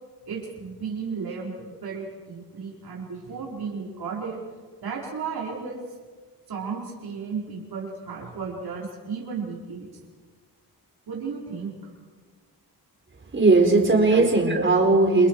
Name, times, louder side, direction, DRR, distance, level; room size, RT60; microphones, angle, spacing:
voice 1, 0.3-4.4 4.8-5.9 6.5-9.9 11.1-11.9 14.1-14.2, right 5 dB, 70° right, -3 dB, 4.9 m, -34 dB
voice 2, 13.3-15.3, right 3 dB, 30° right, 2 dB, 4.5 m, -18 dB
29.5 x 28.5 x 4.8 m, 1.5 s
wide cardioid pair, 160°, 39 cm